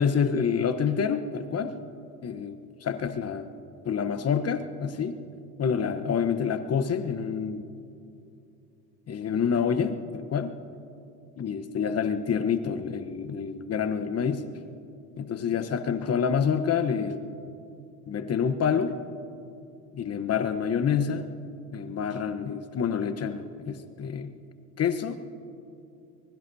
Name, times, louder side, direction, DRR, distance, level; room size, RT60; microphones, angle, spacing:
voice 1, 0.0-1.8 2.2-3.5 3.8-5.2 5.6-7.6 9.1-10.5 11.4-14.4 15.2-17.2 18.1-18.9 19.9-21.3 21.7-24.3 24.8-25.2, left 7 dB, 35° left, 10 dB, 1.0 m, -27 dB
24.0 x 21.5 x 2.7 m, 2.6 s
hypercardioid pair, 85°, 44 cm